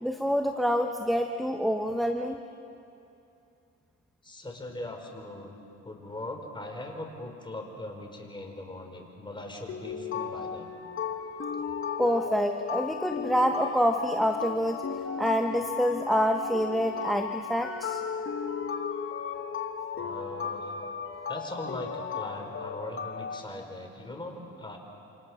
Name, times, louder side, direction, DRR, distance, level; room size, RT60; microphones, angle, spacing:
voice 1, 0.0-2.4 12.0-18.0, equal, ahead, 5 dB, 1.2 m, -27 dB
voice 2, 4.2-5.6 5.8-10.7 20.0-20.7 21.3-24.8, left 1 dB, 15° left, 2 dB, 4.9 m, -40 dB
sound 1, 9.7-23.4, left 6 dB, 45° left, 1.7 m, -35 dB
28.0 x 26.5 x 6.5 m, 2.7 s
cardioid pair, 90°, 30 cm